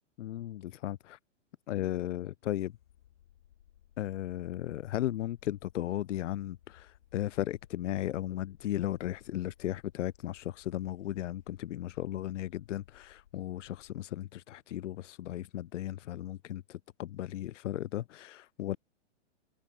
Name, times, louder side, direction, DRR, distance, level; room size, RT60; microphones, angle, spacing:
voice 1, 0.2-1.2 1.7-2.7 4.0-18.8, left 13 dB, 80° left, 0.7 m, -36 dB
sound 1, 2.5-13.9, left 11 dB, 50° left, 4.0 m, -62 dB
hypercardioid pair, 180°, 36 cm